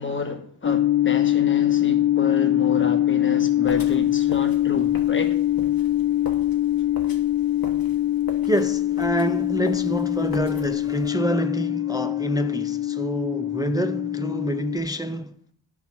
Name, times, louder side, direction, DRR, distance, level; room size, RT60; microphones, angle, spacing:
voice 1, 0.0-5.4, left 3 dB, 25° left, 1.2 m, -30 dB
sound 1, 0.6-14.8, left 13 dB, 60° left, 0.9 m, -23 dB
sound 2, 3.6-11.1, left 4 dB, 45° left, 1.5 m, -41 dB
voice 2, 8.5-15.3, right 1 dB, 10° right, 0.4 m, -27 dB
10.5 x 6.1 x 5.8 m
cardioid pair, 75°, 47 cm